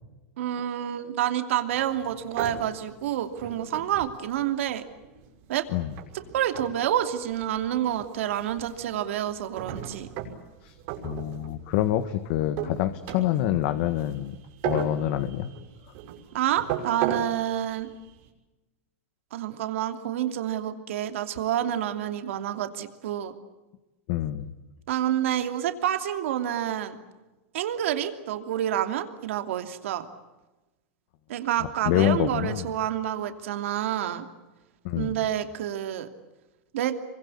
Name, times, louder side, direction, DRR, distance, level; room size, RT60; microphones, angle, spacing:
voice 1, 0.4-4.8 5.5-5.7 6.3-10.1 16.3-17.9 19.3-23.3 24.9-27.0 27.5-30.1 31.3-34.2 35.0-36.1 36.7-37.0, right 11 dB, 75° right, 8 dB, 2.8 m, -28 dB
sound 1, 1.7-18.3, right 9 dB, 55° right, 6.7 m, -38 dB
voice 2, 11.0-14.3 14.6-15.5 24.1-24.5 31.8-32.7 34.8-35.1, left 13 dB, 55° left, 10 dB, 1.6 m, -26 dB
27.0 x 24.0 x 8.6 m, 1.1 s
supercardioid pair, 140°, 7 cm